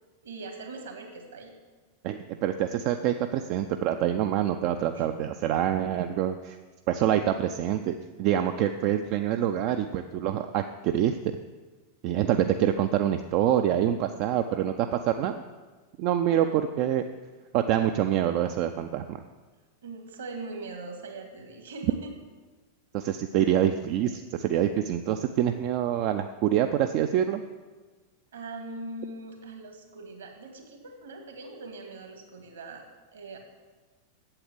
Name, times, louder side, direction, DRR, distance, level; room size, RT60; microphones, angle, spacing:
voice 1, 0.2-1.5 4.9-5.1 16.2-16.6 19.8-22.1 23.4-23.5 28.3-32.9 33.1-33.4, right 2 dB, 65° right, 4 dB, 2.0 m, -41 dB
voice 2, 2.0-6.6 6.9-11.2 12.0-15.4 16.0-17.0 17.5-19.2 22.9-27.4, right 10 dB, 45° right, 7 dB, 0.5 m, -26 dB
8.8 x 7.8 x 7.8 m, 1.3 s
figure-of-eight pair, 90°, 0 cm